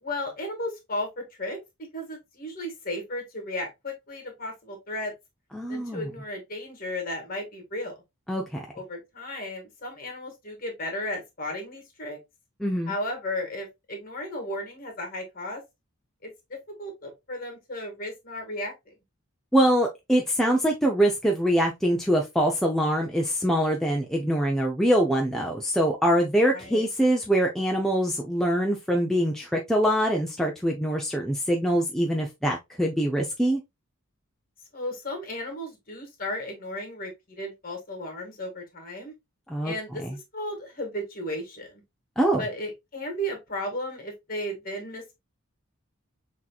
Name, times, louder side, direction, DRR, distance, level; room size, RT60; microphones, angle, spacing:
voice 1, 0.0-5.1 5.7-8.0 8.7-12.2 12.8-15.6 16.2-16.3 16.8-18.9 26.5-26.8 34.7-39.1 39.6-41.8 42.4-45.1, left 1 dB, 40° left, 1.7 m, -34 dB
voice 2, 5.5-6.1 8.3-8.6 12.6-12.9 19.5-33.6 39.5-39.7 40.0-40.2 42.2-42.4, equal, ahead, 0.5 m, -24 dB
6.3 x 2.9 x 2.3 m
head